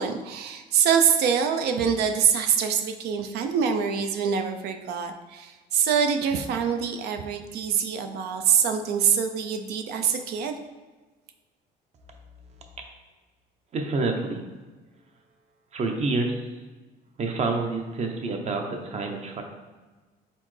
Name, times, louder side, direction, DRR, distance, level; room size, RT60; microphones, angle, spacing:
voice 1, 0.0-10.6, right 7 dB, 75° right, 6 dB, 0.5 m, -24 dB
voice 2, 13.7-14.4 15.7-16.5 17.2-19.4, right 3 dB, 40° right, 3 dB, 0.7 m, -28 dB
4.2 x 3.6 x 3.2 m, 1.3 s
cardioid pair, 110°, 17 cm